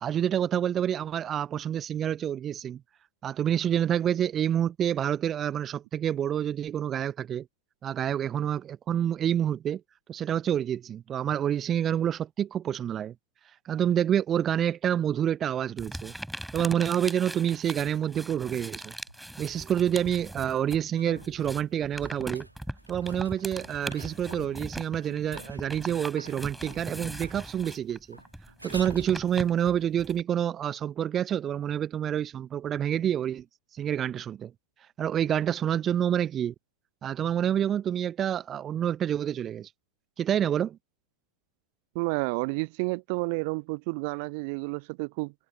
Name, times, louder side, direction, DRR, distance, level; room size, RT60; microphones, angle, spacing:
voice 1, 0.0-2.8 3.2-7.5 7.8-9.8 10.1-13.1 13.6-16.1 16.5-18.9 19.4-22.5 22.9-28.2 28.6-33.4 33.7-34.5 35.0-36.5 37.0-39.7 40.2-40.8, right 9 dB, 25° right, 0.8 m, -28 dB
sound 1, 15.8-20.9 21.1-30.2, right 1 dB, ahead, 4.3 m, -40 dB
sound 2, 19.1-19.2 20.5-29.6 33.0-33.1, right 1 dB, 90° right, 2.2 m, -49 dB
voice 2, 41.9-45.3, right 31 dB, 45° right, 0.3 m, -30 dB
figure-of-eight pair, 90°, 0 cm